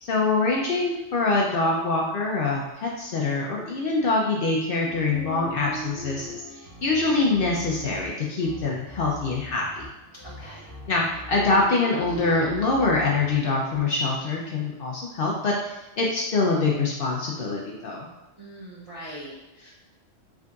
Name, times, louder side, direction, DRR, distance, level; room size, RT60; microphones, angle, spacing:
voice 1, 0.0-6.4 6.8-9.9 10.9-18.1, left 3 dB, 60° left, -2 dB, 0.6 m, -24 dB
sound 1, 4.6-13.8, equal, 15° right, 1.0 m, -41 dB
voice 2, 10.2-10.7 18.4-19.7, right 1 dB, 50° right, -7 dB, 0.4 m, -41 dB
3.8 x 3.5 x 2.3 m, 0.98 s
omnidirectional pair, 1.3 m